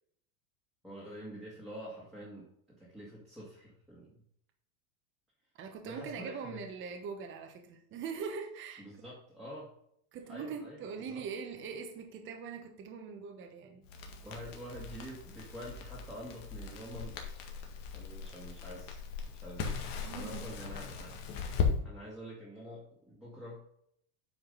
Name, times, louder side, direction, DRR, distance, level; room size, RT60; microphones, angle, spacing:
voice 1, 0.8-2.4 2.8-4.1 5.8-6.6 8.8-9.7 10.3-11.2 14.2-17.2 17.6-19.0 19.3-21.1 21.8-23.6, equal, ahead, -8 dB, 1.9 m, -47 dB
voice 2, 5.5-9.0 10.1-13.9 19.9-20.4, right 6 dB, 30° right, 4 dB, 1.1 m, -42 dB
Crackle, 13.8-21.7, left 6 dB, 50° left, 1.8 m, -38 dB
9.2 x 5.1 x 3.9 m, 0.70 s
supercardioid pair, 150°, 42 cm